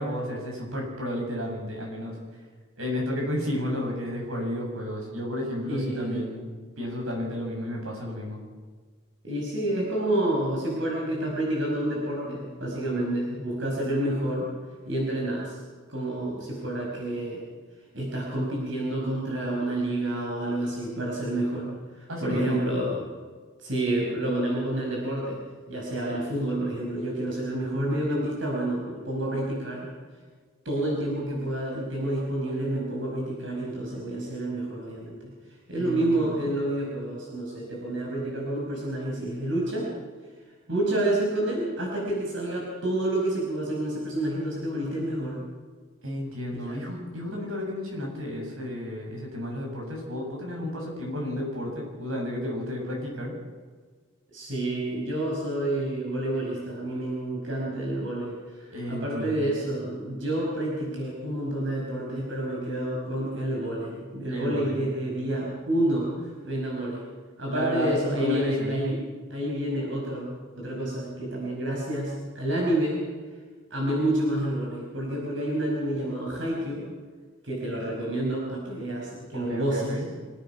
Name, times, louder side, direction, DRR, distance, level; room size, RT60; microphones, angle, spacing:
voice 1, 0.0-2.2 2.8-6.5 6.8-8.4 22.1-22.6 35.8-36.3 46.0-53.4 58.7-59.5 64.3-64.8 67.5-68.8 79.3-80.1, left 1 dB, 90° right, 0 dB, 7.3 m, -32 dB
voice 2, 5.7-6.2 9.2-14.5 14.8-15.6 15.9-17.4 17.9-21.7 22.0-23.0 23.6-25.4 25.7-29.9 30.7-35.3 35.7-39.9 40.7-45.4 46.5-46.8 54.3-67.0 67.4-69.0 69.3-73.0 73.7-76.9 77.4-80.0, right 1 dB, 70° right, -2 dB, 5.5 m, -29 dB
26.0 x 17.0 x 5.9 m, 1.5 s
head